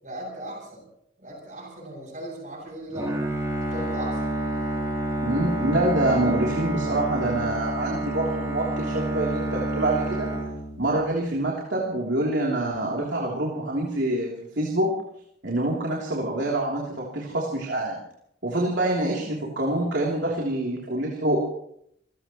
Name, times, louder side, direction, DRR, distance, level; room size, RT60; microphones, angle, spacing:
voice 1, 0.0-0.8 1.2-3.1 3.6-4.2, right 1 dB, 40° right, -3 dB, 7.2 m, -37 dB
Bowed string instrument, 2.9-11.2, right 1 dB, 15° right, 5.2 m, -28 dB
voice 2, 5.2-10.3 10.8-14.3 14.5-14.9 15.4-18.0 18.4-21.5, right 1 dB, 75° right, -3 dB, 3.2 m, -26 dB
29.0 x 16.0 x 3.1 m, 0.72 s
head